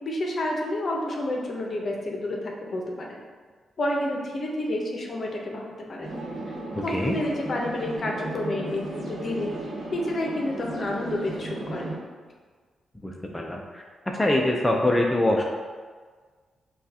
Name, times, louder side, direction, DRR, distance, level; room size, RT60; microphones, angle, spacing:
voice 1, 0.0-3.2 3.8-6.1 6.8-9.5 9.9-11.9, left 1 dB, 50° left, -1 dB, 0.8 m, -29 dB
sound 1, 6.0-12.0, right 2 dB, 55° right, 1.0 m, -35 dB
voice 2, 6.7-7.1 13.0-13.8 14.1-15.4, left 1 dB, 10° left, -1 dB, 0.5 m, -24 dB
6.2 x 2.4 x 2.8 m, 1.5 s
cardioid pair, 70°, 0 cm